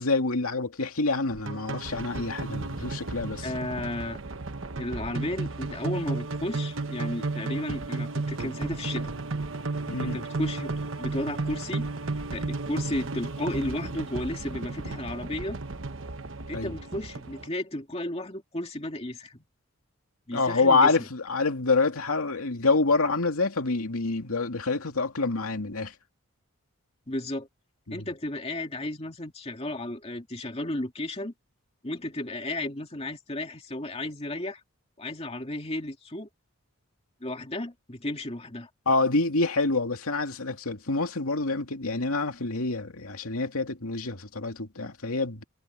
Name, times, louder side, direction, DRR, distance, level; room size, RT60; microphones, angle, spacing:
voice 1, 0.0-3.5 9.9-10.2 16.5-16.7 20.3-25.9 27.9-28.0 38.9-45.4, left 3 dB, 80° left, 2.5 m, -27 dB
sound 1, 1.3-17.5, right 3 dB, 60° right, 1.2 m, -34 dB
voice 2, 3.4-4.2 4.8-9.1 10.0-11.9 12.3-15.6 16.5-19.4 20.3-21.0 27.1-27.5 27.9-31.3 31.8-34.6 35.0-36.3 37.2-38.7, left 1 dB, 30° left, 2.5 m, -33 dB
head